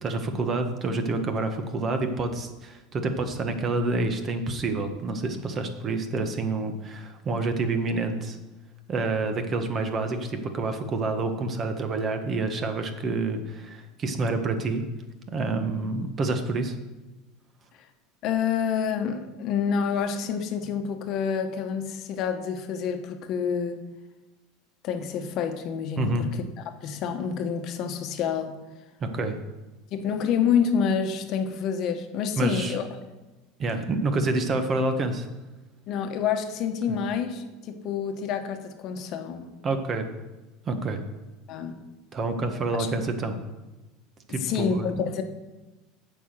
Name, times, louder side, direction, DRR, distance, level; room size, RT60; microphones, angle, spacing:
voice 1, 0.0-8.4 8.9-14.8 15.3-16.8 26.0-26.3 29.0-29.4 32.4-32.8 33.6-35.3 36.9-37.0 39.6-40.1 40.6-41.0 42.1-43.4 44.3-45.0, right 3 dB, 35° right, 7 dB, 1.3 m, -28 dB
voice 2, 18.2-23.8 24.8-26.3 26.8-28.5 29.9-32.9 35.9-39.5 41.5-41.8 42.8-42.9 44.4-45.2, left 7 dB, 55° left, 7 dB, 1.1 m, -28 dB
8.5 x 5.3 x 7.6 m, 1.1 s
supercardioid pair, 105°, 0 cm